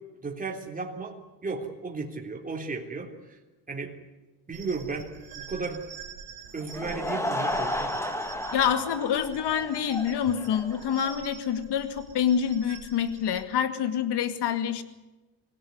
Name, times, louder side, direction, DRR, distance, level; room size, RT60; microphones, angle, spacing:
voice 1, 0.2-1.2 1.4-3.4 3.7-3.9 4.5-5.8 6.5-8.2, right 4 dB, 20° right, 0 dB, 3.7 m, -34 dB
sound 1, 4.5-13.4, right 7 dB, 65° right, 3.6 m, -46 dB
Laughter / Crowd, 6.6-11.1, left 1 dB, 5° left, 2.1 m, -33 dB
voice 2, 8.5-14.8, left 8 dB, 70° left, 10 dB, 2.4 m, -27 dB
25.0 x 17.5 x 9.6 m, 1.1 s
cardioid pair, 140°, 42 cm